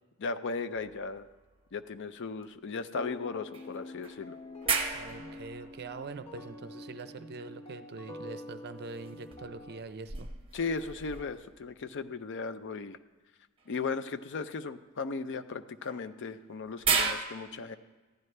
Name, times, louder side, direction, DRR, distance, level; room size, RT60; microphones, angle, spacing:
voice 1, 0.2-1.3 1.7-4.4 10.5-13.0 13.7-17.8, left 4 dB, 55° left, 12 dB, 0.5 m, -36 dB
sound 1, 0.7-2.1 2.4-2.5 3.5-7.0 8.8-11.8 13.6-13.7 15.8-17.1, right 5 dB, 25° right, 0.9 m, -36 dB
sound 2, 2.9-9.8, left 2 dB, 30° left, 1.0 m, -46 dB
voice 2, 4.9-10.3, right 3 dB, 50° right, 11 dB, 0.5 m, -43 dB
14.5 x 10.5 x 3.3 m, 1.2 s
head